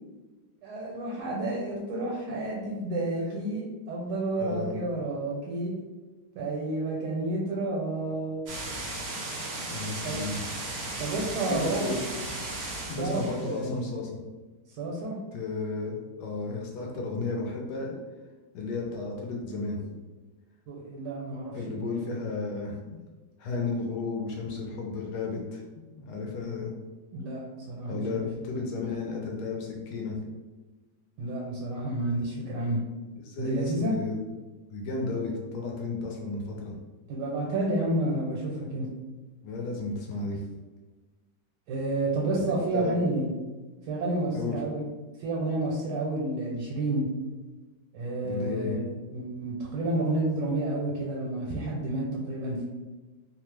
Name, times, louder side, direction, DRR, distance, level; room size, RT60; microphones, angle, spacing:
voice 1, 0.6-5.7 6.3-8.5 10.0-10.2 11.0-11.9 13.0-13.8 14.8-15.1 20.7-22.1 27.1-28.3 31.2-32.8 33.4-33.9 37.1-38.9 41.7-43.3 43.9-44.8 45.2-47.1 47.9-48.8 49.1-52.6, right 2 dB, 80° right, -3 dB, 1.2 m, -30 dB
voice 2, 4.4-4.7 9.7-10.4 11.5-12.0 12.9-14.2 15.3-18.0 18.5-19.8 21.5-23.0 23.4-26.7 27.9-30.2 33.2-34.3 34.7-36.7 39.4-40.4 42.7-43.0 44.3-44.6 48.2-48.8, left 3 dB, 75° left, 0 dB, 1.1 m, -33 dB
sound 1, 8.5-13.6, right 2 dB, 65° right, 0.6 m, -36 dB
2.9 x 2.0 x 3.2 m, 1.2 s
omnidirectional pair, 1.8 m